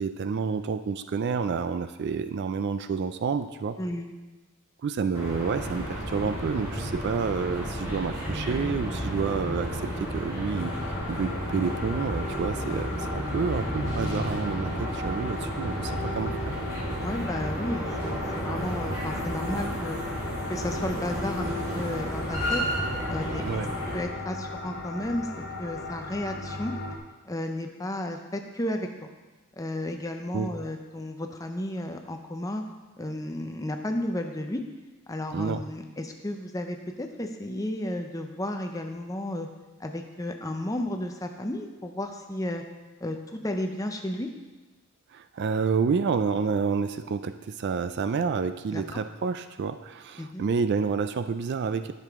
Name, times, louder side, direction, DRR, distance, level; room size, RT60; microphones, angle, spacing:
voice 1, 0.0-3.8 4.8-10.7 11.1-16.5 23.4-23.7 30.3-30.5 35.3-35.6 45.1-51.9, right 5 dB, 50° right, 10 dB, 0.3 m, -29 dB
sound 1, 5.1-24.0, equal, 15° right, 2.9 m, -32 dB
sound 2, 10.6-27.0, left 1 dB, 50° left, 0.7 m, -37 dB
voice 2, 17.0-20.0 20.5-22.6 23.1-23.5 23.9-25.3 25.6-26.7 27.3-28.9 29.6-32.6 33.0-34.6 35.1-39.5 39.8-42.6 43.0-44.3 48.7-49.0 50.2-50.4, left 1 dB, 15° left, 5 dB, 0.6 m, -33 dB
10.5 x 6.7 x 3.6 m, 1.2 s
head